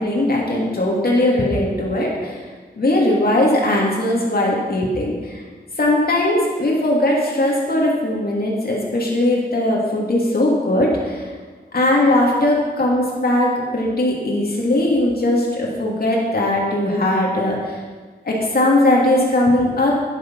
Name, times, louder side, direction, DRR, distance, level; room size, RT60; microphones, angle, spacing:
voice 1, 0.0-2.4 2.8-5.4 5.8-11.2 11.7-17.8 18.2-20.0, left 1 dB, 65° left, -3 dB, 2.9 m, -19 dB
11.0 x 10.0 x 5.6 m, 1.4 s
wide cardioid pair, 100°, 17 cm